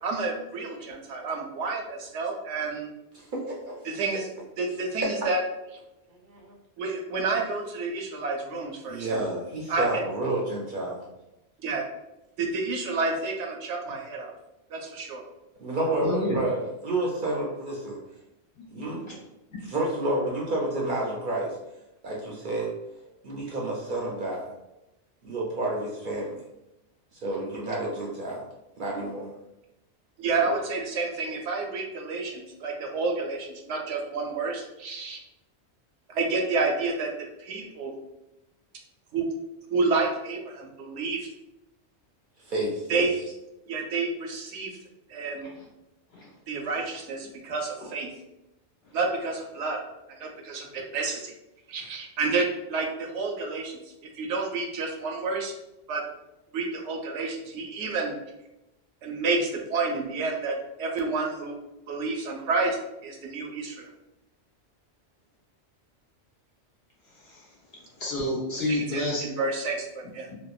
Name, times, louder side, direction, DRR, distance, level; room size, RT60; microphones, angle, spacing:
voice 1, 0.0-2.9 3.8-4.3 4.6-5.4 6.8-9.2 9.7-10.0 11.6-11.8 12.4-14.3 14.7-15.2 30.2-35.2 36.1-37.1 37.4-37.9 39.1-39.3 39.7-41.3 42.9-43.1 43.7-44.7 45.1-45.5 46.5-48.1 48.9-49.8 50.1-51.3 51.7-55.5 55.9-56.0 56.5-58.1 59.0-61.6 61.9-62.8 63.0-63.9 68.7-70.3, right 3 dB, 90° right, 1 dB, 0.9 m, -29 dB
voice 2, 3.1-3.7 6.1-6.5 8.9-11.0 15.6-18.0 18.7-19.2 19.7-21.6 22.0-22.7 23.2-24.5 25.2-26.4 27.2-28.4 28.8-29.3 42.4-43.1, right 2 dB, 60° right, -3 dB, 0.6 m, -30 dB
voice 3, 16.0-16.4 18.8-19.2 45.5-45.6 46.1-46.3 48.8-49.0 67.1-69.2 70.2-70.3, left 1 dB, 65° left, -5 dB, 1.1 m, -31 dB
2.8 x 2.1 x 2.3 m, 0.92 s
omnidirectional pair, 1.2 m